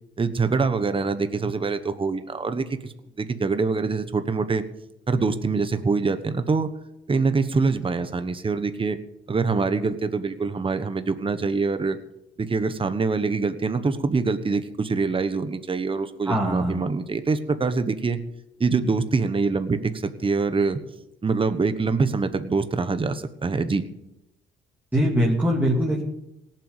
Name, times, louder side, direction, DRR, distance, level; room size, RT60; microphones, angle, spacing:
voice 1, 0.2-4.6 5.1-6.7 7.1-9.0 9.3-12.0 12.4-18.2 18.6-20.8 21.2-23.8, right 4 dB, 25° right, 10 dB, 1.2 m, -24 dB
voice 2, 16.3-16.8 24.9-26.0, equal, 10° right, -4 dB, 2.9 m, -22 dB
17.5 x 7.8 x 7.3 m, 0.88 s
cardioid pair, 90°, 20 cm